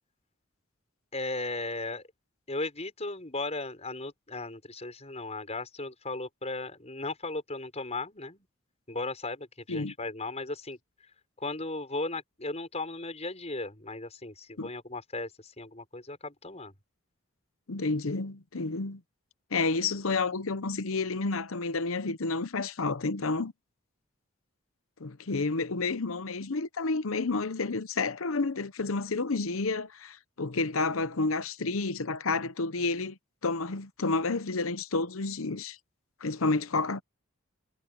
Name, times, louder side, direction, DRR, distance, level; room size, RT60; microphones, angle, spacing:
voice 1, 1.1-2.0 2.5-8.4 8.9-10.8 11.4-16.7, left 2 dB, 30° left, 6.4 m, -36 dB
voice 2, 17.7-19.0 19.5-23.5 25.0-35.8 36.2-37.0, left 3 dB, 80° left, 0.9 m, -30 dB
head